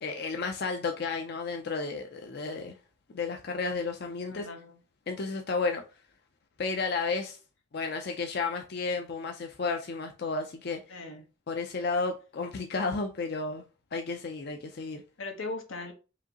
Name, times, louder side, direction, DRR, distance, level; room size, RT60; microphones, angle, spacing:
voice 1, 0.0-2.7 3.1-4.5 5.1-5.8 6.6-7.4 7.7-11.0 11.5-13.6 13.9-15.0, left 4 dB, 55° left, 0.5 m, -32 dB
voice 2, 4.2-4.8 10.9-11.3 15.2-15.9, left 3 dB, 90° left, 1.0 m, -39 dB
4.8 x 2.7 x 2.8 m
head